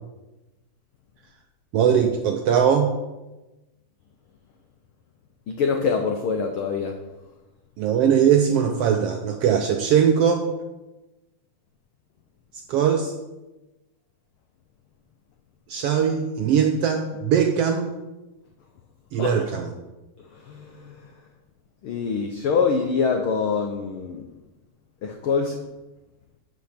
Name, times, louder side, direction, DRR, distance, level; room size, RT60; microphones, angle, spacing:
voice 1, 1.7-2.9 7.8-10.5 12.7-13.1 15.7-17.9 19.1-19.7, right 8 dB, 75° right, 5 dB, 1.4 m, -20 dB
voice 2, 5.5-7.0 19.2-19.3 20.5-20.8 21.8-24.2 25.0-25.6, left 5 dB, 80° left, 4 dB, 1.2 m, -24 dB
8.4 x 5.8 x 6.5 m, 1.1 s
omnidirectional pair, 3.3 m